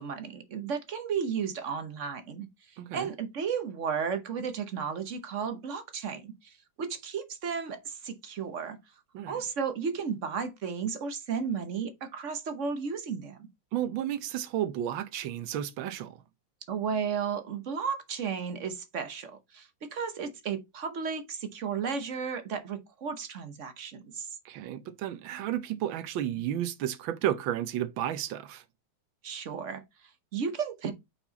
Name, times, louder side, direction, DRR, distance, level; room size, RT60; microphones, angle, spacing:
voice 1, 0.0-8.8 9.3-13.5 16.7-24.4 29.2-30.9, right 6 dB, 50° right, 0.9 m, -34 dB
voice 2, 2.8-3.1 9.1-9.3 13.7-16.1 24.4-28.6, right 11 dB, 75° right, 1.5 m, -32 dB
5.9 x 4.4 x 3.9 m
omnidirectional pair, 2.3 m